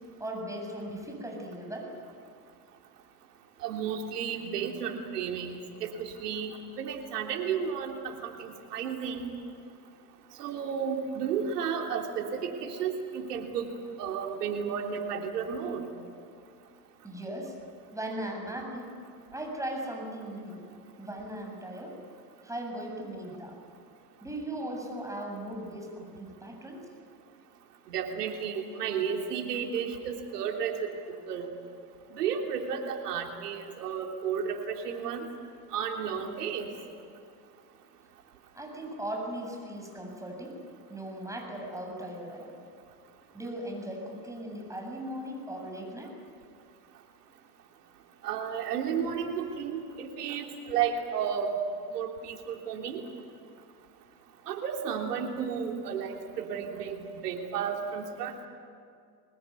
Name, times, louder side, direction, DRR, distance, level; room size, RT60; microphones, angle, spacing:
voice 1, 0.2-1.9 17.0-17.5 17.9-18.9 19.3-20.6 21.0-22.0 22.4-23.6 24.2-26.8 38.5-40.6 40.9-42.6 43.3-46.1, right 1 dB, 5° right, 1 dB, 7.6 m, -38 dB
voice 2, 3.6-9.2 10.4-13.7 14.0-15.9 27.9-31.0 31.3-31.5 32.1-35.3 35.7-36.7 48.2-51.6 51.9-53.0 54.5-57.0 57.2-58.3, right 7 dB, 90° right, 3 dB, 3.4 m, -33 dB
24.5 x 20.0 x 9.5 m, 2.3 s
hypercardioid pair, 90°, 46 cm